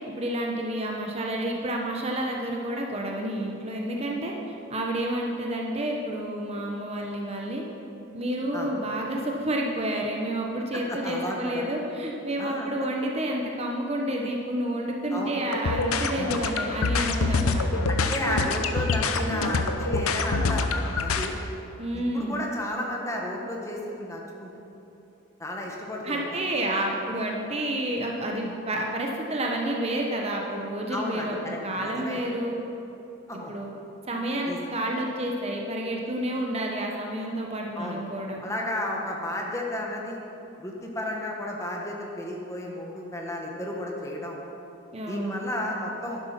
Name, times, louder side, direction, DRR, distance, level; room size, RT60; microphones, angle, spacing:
voice 1, 0.2-4.3 4.7-7.6 8.1-17.8 21.8-22.5 26.0-32.6 33.5-33.7 34.1-38.4 44.9-45.5, right 1 dB, 30° right, 0 dB, 1.0 m, -30 dB
voice 2, 10.7-11.7 12.4-12.7 15.1-15.4 17.9-21.3 21.9-24.5 25.4-26.2 30.9-32.2 33.3-33.5 34.5-34.6 37.7-38.0 38.4-40.2 40.6-44.4 45.1-46.2, left 1 dB, 15° left, -1 dB, 1.4 m, -33 dB
sound 1, 15.5-21.3, left 3 dB, 85° left, 0.8 m, -26 dB
11.0 x 11.0 x 5.9 m, 2.9 s
head